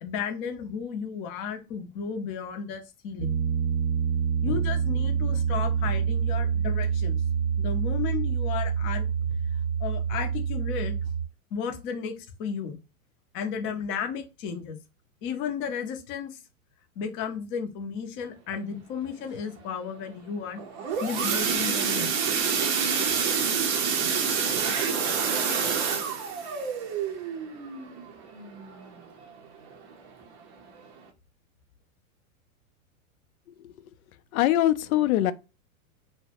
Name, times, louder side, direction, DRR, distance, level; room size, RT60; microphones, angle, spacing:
voice 1, 0.0-3.4 4.4-7.2 7.6-9.1 9.8-11.0 11.5-12.1 12.4-12.8 13.3-14.8 15.2-16.3 17.0-20.6 21.0-22.2, left 7 dB, 30° left, 0.5 m, -33 dB
Piano, 3.2-11.3, right 7 dB, 80° right, 0.7 m, -27 dB
sound 1, 20.6-29.2 29.7-29.9 30.2-30.3 30.8-30.9, right 6 dB, 30° right, 0.5 m, -27 dB
voice 2, 34.3-35.3, left 13 dB, 75° left, 0.5 m, -23 dB
2.6 x 2.1 x 2.8 m
hypercardioid pair, 130°, 43 cm